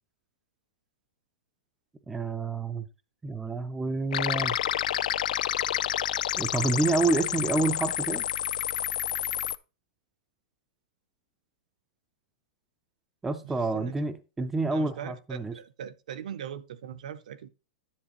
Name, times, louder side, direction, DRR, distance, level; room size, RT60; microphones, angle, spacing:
voice 1, 2.1-2.9 3.2-4.6 6.4-8.2 13.2-15.5, right 3 dB, 5° right, 0.3 m, -28 dB
sound 1, 4.1-9.6, left 11 dB, 75° left, 0.4 m, -29 dB
voice 2, 13.4-14.1 14.7-17.5, right 8 dB, 65° right, 0.7 m, -41 dB
9.9 x 7.8 x 2.9 m
supercardioid pair, 180°, 4 cm